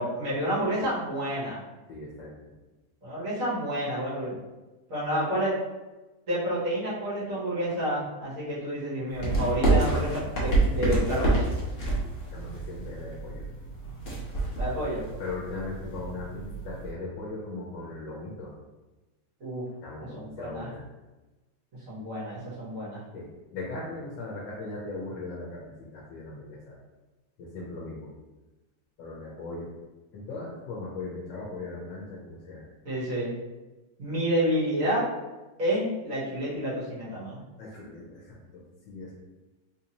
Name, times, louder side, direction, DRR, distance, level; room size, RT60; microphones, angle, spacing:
voice 1, 0.0-1.6 3.0-4.4 4.9-5.6 6.3-11.4 14.6-15.1 19.4-19.6 20.2-20.7 21.9-23.0 32.9-33.3 34.0-35.0 35.6-37.4, right 1 dB, 50° right, -9 dB, 1.8 m, -29 dB
voice 2, 1.9-2.3 12.3-13.4 15.2-18.5 19.8-20.9 23.1-26.8 27.4-28.1 29.0-29.7 30.1-32.6 37.6-39.1, left 3 dB, 90° left, -5 dB, 1.5 m, -39 dB
sound 1, 9.1-16.9, right 2 dB, 40° left, 1.0 m, -28 dB
3.9 x 2.8 x 2.8 m, 1.1 s
omnidirectional pair, 1.9 m